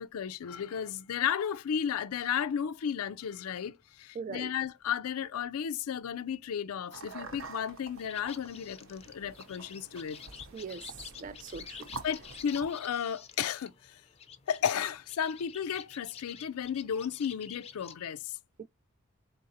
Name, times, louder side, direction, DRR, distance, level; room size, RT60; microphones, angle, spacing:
voice 1, 0.0-10.2 12.0-14.0 14.5-18.4, left 8 dB, 85° left, 0.4 m, -34 dB
voice 2, 4.2-4.5 10.5-10.9 11.2-11.8 18.6-18.7, right 5 dB, 35° right, 0.3 m, -40 dB
sound 1, 6.9-12.7, right 4 dB, 70° right, 0.8 m, -47 dB
sound 2, 8.0-17.9, left 8 dB, 30° left, 0.5 m, -50 dB
3.9 x 3.7 x 2.7 m
head